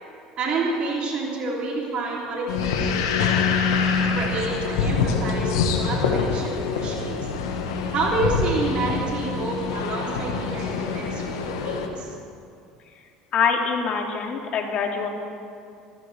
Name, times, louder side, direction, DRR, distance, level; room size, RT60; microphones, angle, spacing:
voice 1, 0.4-3.4 4.1-7.3 7.9-12.1, right 3 dB, 50° right, -2 dB, 3.3 m, -29 dB
sound 1, 2.5-11.9, left 5 dB, 85° left, 1.6 m, -25 dB
voice 2, 13.3-15.1, left 6 dB, 55° left, 2 dB, 2.5 m, -24 dB
24.5 x 14.5 x 3.5 m, 2.4 s
supercardioid pair, 85°, 2 cm